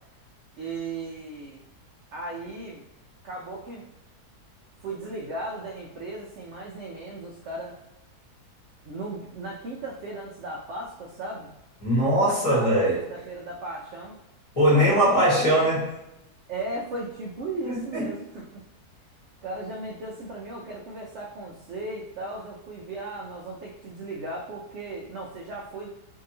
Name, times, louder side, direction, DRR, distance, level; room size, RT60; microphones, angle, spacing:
voice 1, 0.6-1.6 2.1-2.8 3.2-3.9 4.8-7.8 8.8-11.5 12.2-14.2 14.7-15.3 16.5-18.6 19.4-25.9, right 2 dB, 75° right, -2 dB, 0.6 m, -36 dB
voice 2, 11.8-13.0 14.6-15.9 17.6-18.1, equal, 25° left, -8 dB, 1.0 m, -21 dB
2.7 x 2.7 x 2.6 m, 0.91 s
omnidirectional pair, 1.7 m